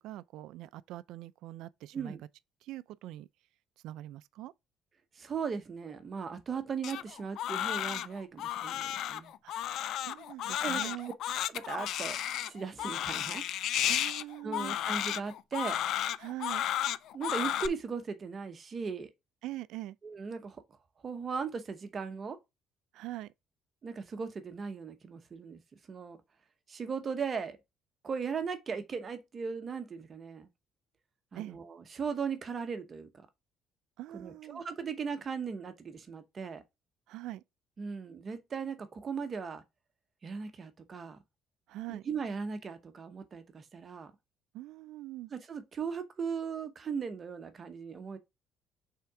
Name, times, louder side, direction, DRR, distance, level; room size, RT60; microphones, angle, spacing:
voice 1, 0.0-2.2 2.6-3.3 3.8-4.5 9.4-9.6 10.0-11.1 13.8-14.8 16.2-16.7 19.4-20.0 22.9-23.3 31.3-31.6 34.0-34.6 37.1-37.4 41.7-42.1 44.5-45.3, right 15 dB, 80° right, 0.3 m, -43 dB
voice 2, 5.1-9.3 10.6-10.8 11.5-12.2 12.4-13.4 14.4-15.8 17.1-19.1 20.0-20.6 21.0-22.4 23.8-25.6 25.9-26.2 26.7-27.6 28.0-30.5 31.3-33.1 34.1-36.6 37.8-39.6 40.2-41.2 41.9-44.1 45.3-48.2, right 5 dB, 30° right, 0.9 m, -38 dB
Crying sobbing, 6.8-17.7, left 11 dB, 65° left, 0.4 m, -33 dB
5.7 x 3.6 x 4.8 m
cardioid pair, 140°, 0 cm